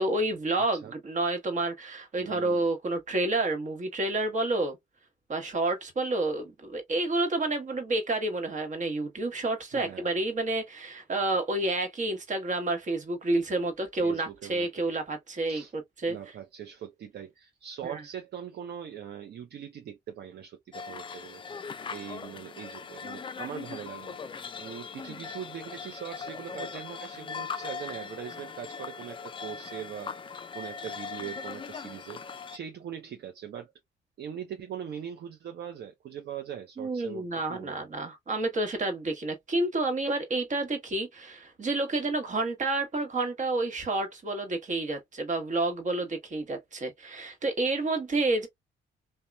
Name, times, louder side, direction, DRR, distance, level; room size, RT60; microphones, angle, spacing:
voice 1, 0.0-4.8 5.3-15.6 16.0-16.2 17.8-18.0 36.8-48.5, right 2 dB, 40° right, 1.1 m, -29 dB
voice 2, 2.2-2.7 9.7-10.2 14.0-14.7 15.5-15.7 16.1-24.2 24.6-33.7 34.2-37.9, right 9 dB, 55° right, 0.5 m, -41 dB
sound 1, 20.7-32.6, left 5 dB, 25° left, 0.3 m, -40 dB
2.9 x 2.1 x 2.2 m
cardioid pair, 90°, 20 cm